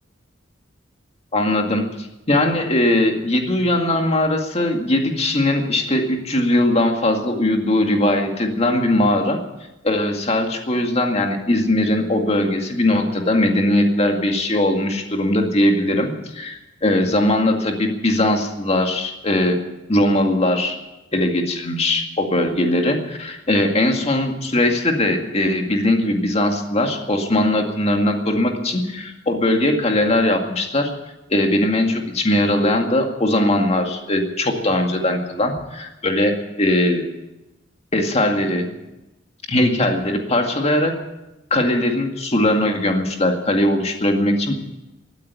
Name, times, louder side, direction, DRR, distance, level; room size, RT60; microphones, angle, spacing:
voice 1, 1.3-9.4 9.8-19.6 19.9-20.8 21.1-30.9 31.3-37.0 37.9-38.7 39.5-40.9 41.5-44.5, left 1 dB, 35° left, 3 dB, 2.0 m, -20 dB
16.5 x 9.2 x 9.1 m, 0.99 s
head